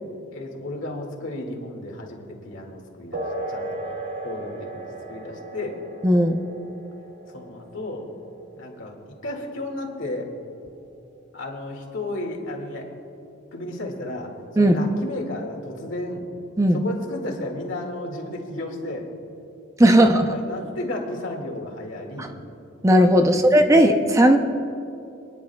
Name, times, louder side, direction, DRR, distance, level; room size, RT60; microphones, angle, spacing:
voice 1, 0.3-3.2 3.5-3.8 4.2-5.8 7.3-8.1 8.6-10.3 11.3-12.9 13.5-16.3 16.7-19.1 19.9-22.3 23.3-23.5, left 1 dB, 75° left, 1 dB, 2.1 m, -33 dB
sound 1, 3.1-11.1, right 1 dB, 70° right, 2.0 m, -37 dB
voice 2, 6.0-6.4 14.6-14.8 16.6-16.8 19.8-20.3 22.2-22.3 22.8-24.4, equal, 15° right, 6 dB, 0.5 m, -16 dB
27.0 x 10.5 x 2.3 m, 2.7 s
head